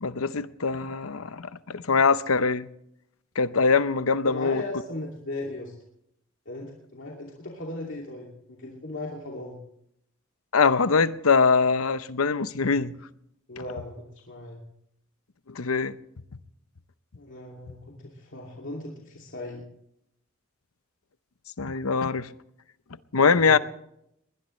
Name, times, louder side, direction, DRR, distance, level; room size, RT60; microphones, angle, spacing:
voice 1, 0.0-2.7 3.4-4.6 10.5-12.9 15.5-16.0 21.6-22.3 23.1-23.6, left 5 dB, 85° left, 0.8 m, -23 dB
voice 2, 4.2-5.8 6.5-9.6 13.5-14.6 17.2-19.7 23.4-23.6, left 2 dB, 60° left, 2.6 m, -37 dB
21.0 x 20.0 x 3.2 m
head